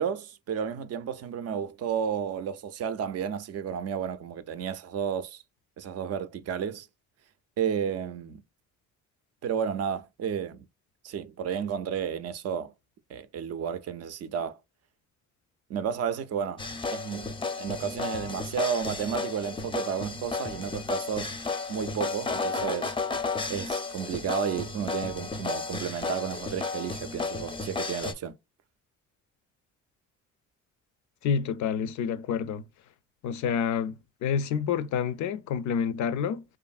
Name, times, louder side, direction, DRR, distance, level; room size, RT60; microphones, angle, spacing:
voice 1, 0.0-5.4 5.8-6.9 7.6-8.4 9.4-10.7 11.0-12.7 13.1-14.6 15.7-16.6 16.9-17.3 17.6-21.3 21.7-22.9 23.5-28.4, right 8 dB, 55° right, 0.4 m, -32 dB
sound 1, 16.6-28.1, left 4 dB, 15° left, 0.5 m, -33 dB
voice 2, 31.2-32.6 33.2-36.4, left 7 dB, 70° left, 0.5 m, -28 dB
2.7 x 2.5 x 2.3 m
cardioid pair, 90°, 30 cm